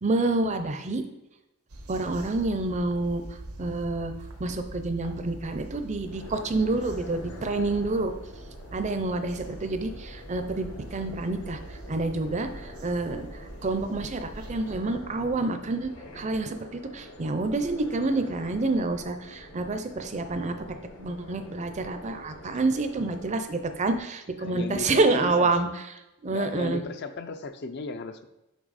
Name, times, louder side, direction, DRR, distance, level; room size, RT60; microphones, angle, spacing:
voice 1, 0.0-1.0 1.9-3.2 3.6-4.1 4.4-8.1 8.7-16.7 16.9-20.7 21.0-25.7 26.2-26.8, right 2 dB, 30° right, 8 dB, 0.5 m, -28 dB
sound 1, 1.7-14.7, right 1 dB, 85° right, 1.0 m, -44 dB
sound 2, 5.8-24.0, left 1 dB, 70° left, 1.3 m, -46 dB
voice 2, 24.4-25.5 26.3-28.2, left 4 dB, 50° left, 10 dB, 0.4 m, -35 dB
6.0 x 5.4 x 4.1 m, 0.93 s
head